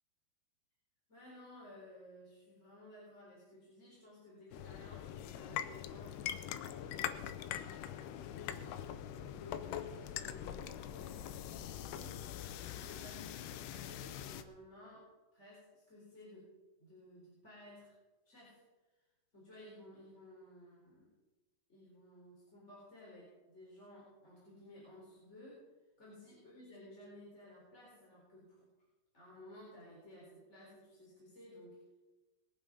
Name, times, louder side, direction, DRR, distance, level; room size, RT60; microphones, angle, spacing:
voice 1, 1.1-15.1 15.3-16.5 16.8-17.9 18.2-18.6 19.3-21.1 21.7-25.6 26.0-28.7 29.1-31.8, left 1 dB, 15° left, -6 dB, 4.2 m, -56 dB
sound 1, 4.5-14.4, left 10 dB, 90° left, 2.8 m, -43 dB
21.0 x 9.1 x 5.4 m, 1.2 s
omnidirectional pair, 4.7 m